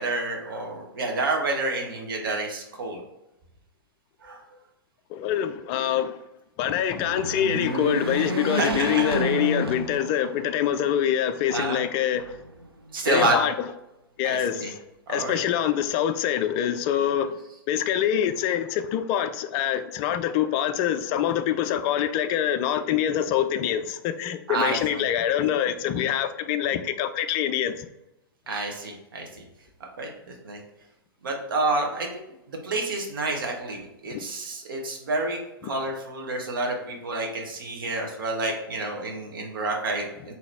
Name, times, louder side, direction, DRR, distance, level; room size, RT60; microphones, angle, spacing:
voice 1, 0.0-3.0 4.2-4.4 8.5-9.0 11.5-11.8 12.9-13.4 14.2-14.7 15.1-15.4 24.5-24.8 28.5-29.3 30.0-30.1 30.4-30.6 31.2-32.2 32.5-40.3, right 2 dB, 65° right, 1.0 m, -28 dB
voice 2, 5.1-6.2 6.6-12.4 13.1-13.7 14.2-14.8 15.1-17.4 17.7-27.9 34.1-34.3 35.6-35.7, left 10 dB, 30° left, 0.3 m, -25 dB
sound 1, 6.9-10.5 11.0-11.1 12.1-12.9, right 2 dB, 90° right, 0.5 m, -30 dB
3.9 x 2.8 x 3.2 m
figure-of-eight pair, 105°, 12 cm